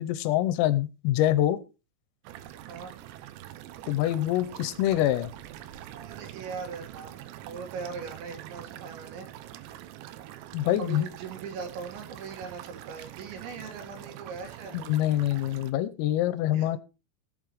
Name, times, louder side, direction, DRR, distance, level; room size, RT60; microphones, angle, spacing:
voice 1, 0.0-1.6 3.9-5.3 10.5-11.1 14.7-16.8, left 13 dB, 85° left, 14 dB, 3.4 m, -25 dB
sound 1, 2.2-15.7, right 13 dB, 85° right, 2.6 m, -44 dB
voice 2, 5.9-7.2 7.5-9.7 10.8-14.7 16.5-16.8, right 5 dB, 65° right, 3 dB, 3.9 m, -40 dB
18.5 x 8.2 x 3.1 m, 0.30 s
omnidirectional pair, 5.9 m